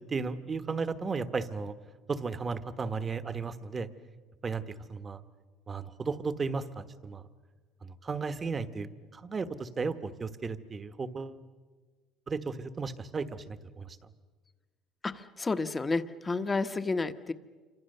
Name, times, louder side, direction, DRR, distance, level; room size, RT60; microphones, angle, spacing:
voice 1, 0.1-1.7 2.1-3.9 4.4-5.2 5.7-7.3 7.8-11.4 12.3-14.0, right 4 dB, 25° right, 11 dB, 1.3 m, -35 dB
voice 2, 15.0-17.3, left 3 dB, 20° left, 10 dB, 1.1 m, -31 dB
27.5 x 25.5 x 6.8 m, 1.4 s
cardioid pair, 115°, 0 cm